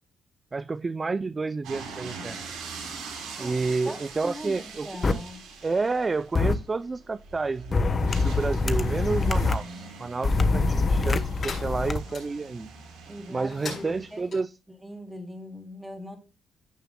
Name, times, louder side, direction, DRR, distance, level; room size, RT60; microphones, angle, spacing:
voice 1, 0.5-2.4 3.4-4.9 5.6-12.7 13.3-14.6, right 3 dB, 30° right, 0.4 m, -30 dB
sound 1, 1.6-14.2, right 4 dB, 90° right, 3.9 m, -43 dB
voice 2, 3.8-5.6 13.1-14.3 14.8-16.2, equal, 10° right, 2.9 m, -40 dB
sound 2, 5.0-5.1 6.3-6.5 7.7-9.5 10.2-12.0, left 3 dB, 35° left, 1.0 m, -24 dB
sound 3, 11.4-12.3 13.5-14.4, left 5 dB, 50° left, 5.4 m, -39 dB
15.0 x 6.8 x 2.2 m
cardioid pair, 90°, 0 cm